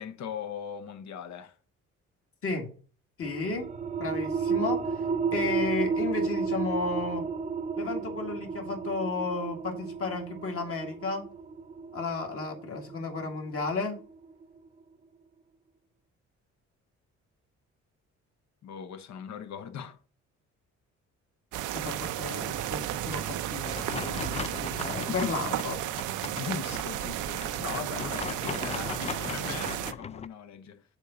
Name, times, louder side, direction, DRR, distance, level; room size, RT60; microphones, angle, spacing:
voice 1, 0.0-1.5 18.6-20.0 25.1-25.3 26.4-30.8, left 8 dB, 65° left, 0.9 m, -39 dB
voice 2, 3.2-3.7 4.0-4.8 5.3-7.3 7.8-11.2 11.9-14.0 21.7-25.8, left 3 dB, 50° left, 2.1 m, -33 dB
sound 1, 3.2-14.4, right 5 dB, 25° right, 0.7 m, -32 dB
sound 2, 21.5-29.9, right 13 dB, 90° right, 0.5 m, -33 dB
sound 3, 23.7-30.3, left 6 dB, 25° left, 0.3 m, -39 dB
7.3 x 4.0 x 5.7 m
cardioid pair, 90°, 30 cm